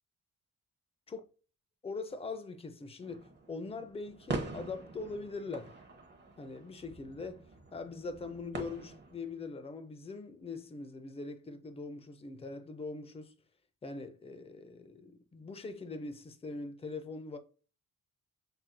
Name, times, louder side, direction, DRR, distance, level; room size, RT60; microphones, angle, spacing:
voice 1, 1.8-5.7 6.4-7.5 7.7-13.3 13.8-17.4, left 3 dB, 15° left, 0.5 m, -42 dB
sound 1, 3.0-9.4, right 3 dB, 30° right, 0.8 m, -44 dB
5.8 x 2.6 x 2.2 m
cardioid pair, 90°, 34 cm